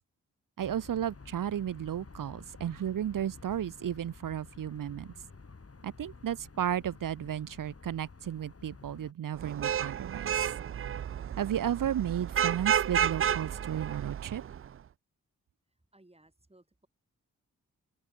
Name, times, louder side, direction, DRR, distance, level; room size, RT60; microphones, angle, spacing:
sound 1, 0.6-9.1, left 4 dB, 40° left, 3.7 m, -51 dB
voice 1, 0.6-5.1 5.8-10.3 11.4-14.4, right 10 dB, 65° right, 0.8 m, -33 dB
Vehicle horn car horn honking / Traffic noise roadway noise, 9.4-14.7, right 9 dB, 40° right, 0.4 m, -31 dB
voice 2, 15.9-16.9, right 1 dB, 15° right, 3.9 m, -61 dB
open air
supercardioid pair, 40°, 36 cm